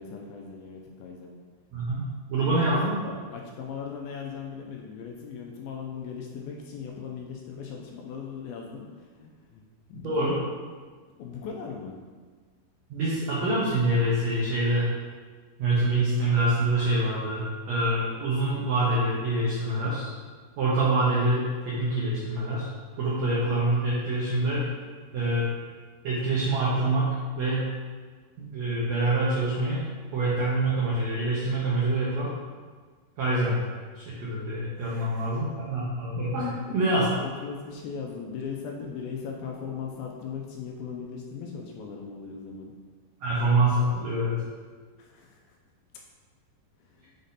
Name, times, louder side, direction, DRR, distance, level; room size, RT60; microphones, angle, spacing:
voice 1, 0.0-1.3 2.4-9.6 9.9-10.4 11.2-12.0 34.8-35.4 36.4-36.8 37.2-42.7 45.0-45.6 46.8-47.1, left 6 dB, 80° left, 0 dB, 2.2 m, -38 dB
voice 2, 1.7-2.9 10.0-10.3 12.9-14.9 15.6-20.1 20.6-22.7 23.0-24.7 25.1-25.5 26.0-27.1 27.4-27.7 28.4-29.8 30.1-32.3 33.2-33.6 33.9-36.4 36.7-37.0 43.2-44.4, right 2 dB, 80° right, -7 dB, 1.5 m, -25 dB
6.6 x 4.2 x 4.0 m, 1.5 s
omnidirectional pair, 4.6 m